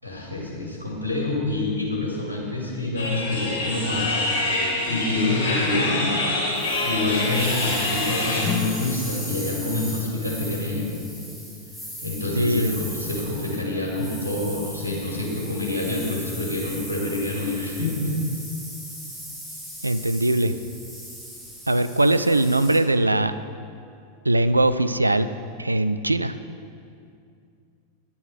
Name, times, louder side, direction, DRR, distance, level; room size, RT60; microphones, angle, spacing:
voice 1, 0.0-6.0 6.8-11.0 12.0-18.1, left 2 dB, 85° left, -3 dB, 2.3 m, -27 dB
sound 1, 3.0-8.4, left 2 dB, 55° left, 2.5 m, -25 dB
sound 2, 6.5-22.8, equal, ahead, 1.9 m, -38 dB
sound 3, 8.4-13.5, left 8 dB, 35° left, 0.5 m, -37 dB
voice 2, 12.4-12.7 19.8-20.5 21.7-23.3 24.2-25.3 25.6-26.3, right 1 dB, 85° right, 12 dB, 0.4 m, -21 dB
10.5 x 7.1 x 6.1 m, 2.4 s
figure-of-eight pair, 90°, 0 cm